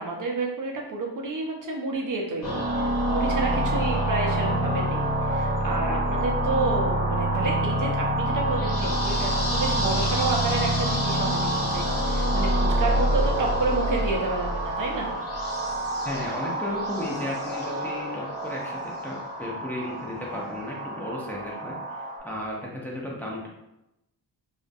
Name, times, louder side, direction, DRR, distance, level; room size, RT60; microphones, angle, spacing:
voice 1, 0.0-2.6 3.1-15.1, right 3 dB, 50° right, -1 dB, 0.5 m, -30 dB
sound 1, 2.4-22.2, right 1 dB, 50° left, 1.1 m, -26 dB
voice 2, 16.0-23.5, left 1 dB, 5° left, -4 dB, 0.5 m, -34 dB
2.3 x 2.1 x 2.5 m, 0.89 s
cardioid pair, 70°, 42 cm